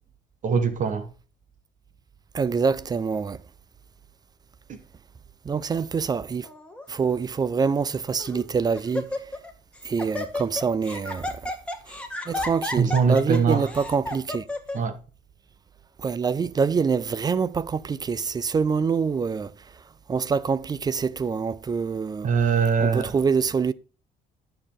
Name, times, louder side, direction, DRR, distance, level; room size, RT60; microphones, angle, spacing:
voice 1, 0.4-1.1 4.7-4.8 12.8-13.7 14.7-15.0 22.2-23.1, right 5 dB, 50° right, 1.1 m, -22 dB
voice 2, 2.3-3.4 5.5-6.5 6.9-9.1 9.8-11.3 12.3-14.4 16.0-19.5 20.1-22.3 22.8-23.7, right 5 dB, 25° right, 0.4 m, -25 dB
Laughter, 6.4-6.8 7.6-7.7 8.2-8.5 8.7-9.5 9.8-14.8, left 2 dB, 5° left, 1.3 m, -32 dB
10.0 x 6.8 x 3.7 m
cardioid pair, 110°, 17 cm